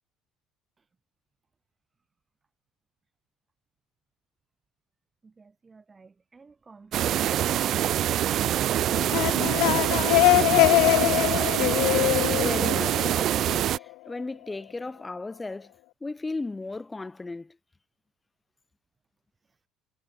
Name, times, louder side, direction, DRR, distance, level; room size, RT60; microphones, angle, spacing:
voice 1, 5.2-9.0 9.5-9.7 19.4-19.6, right 4 dB, 20° right, 3.9 m, -52 dB
sound 1, 6.9-13.8, right 11 dB, 50° right, 0.4 m, -25 dB
sound 2, 8.9-13.6, left 24 dB, 85° left, 0.4 m, -23 dB
voice 2, 12.3-15.7 16.0-17.6, left 3 dB, 10° left, 1.4 m, -35 dB
cardioid pair, 150°, 0 cm